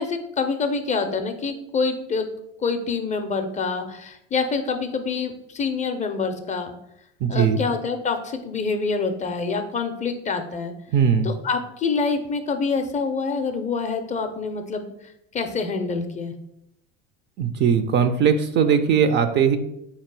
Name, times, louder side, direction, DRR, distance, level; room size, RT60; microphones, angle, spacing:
voice 1, 0.0-2.3 2.6-6.7 7.3-10.7 11.2-16.3, left 4 dB, 25° left, 6 dB, 0.4 m, -26 dB
voice 2, 7.2-7.6 10.9-11.3 17.4-19.6, right 7 dB, 35° right, 9 dB, 0.4 m, -19 dB
4.0 x 2.9 x 4.6 m, 0.80 s
supercardioid pair, 110°, 31 cm